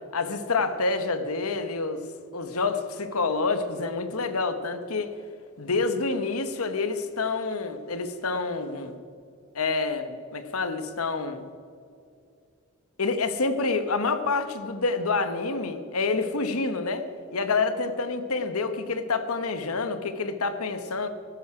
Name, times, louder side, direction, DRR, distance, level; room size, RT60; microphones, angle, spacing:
voice 1, 0.1-2.0 2.3-5.1 5.6-9.0 9.5-11.5 13.0-17.1 17.3-21.1, left 3 dB, 90° left, 9 dB, 1.1 m, -28 dB
15.5 x 12.0 x 4.9 m, 2.4 s
head